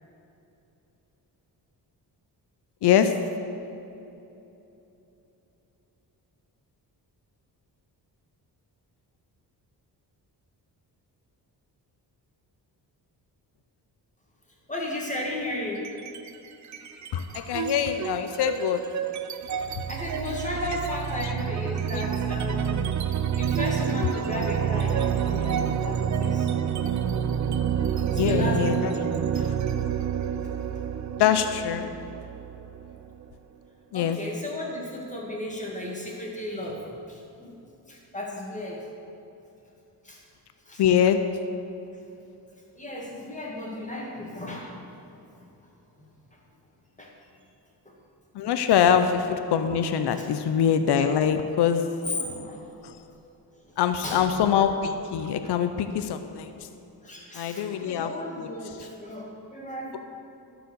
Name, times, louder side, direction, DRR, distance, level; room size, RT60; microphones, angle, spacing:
voice 1, 2.8-3.1 17.1-18.8 21.9-22.0 28.2-28.9 29.3-29.6 31.2-31.9 33.9-34.2 40.8-41.2 48.3-51.8 52.8-52.9 53.8-56.5 57.3-58.5, left 8 dB, 75° left, 8 dB, 0.6 m, -24 dB
voice 2, 14.7-15.8 19.5-22.8 23.3-27.0 28.1-28.8 33.9-37.6 37.9-38.9 40.0-40.2 40.7-40.8 42.8-44.7 45.1-45.2 46.0-46.1 47.0-47.1 47.9-48.0 50.2-50.3 52.1-52.7 54.0-54.3 54.6-54.7 55.4-55.5 57.0-60.0, left 1 dB, 20° left, -2 dB, 2.0 m, -35 dB
sound 1, 15.8-16.3 16.6-33.2, right 8 dB, 45° right, 0.5 m, -28 dB
12.0 x 4.9 x 6.6 m, 2.9 s
cardioid pair, 110°, 41 cm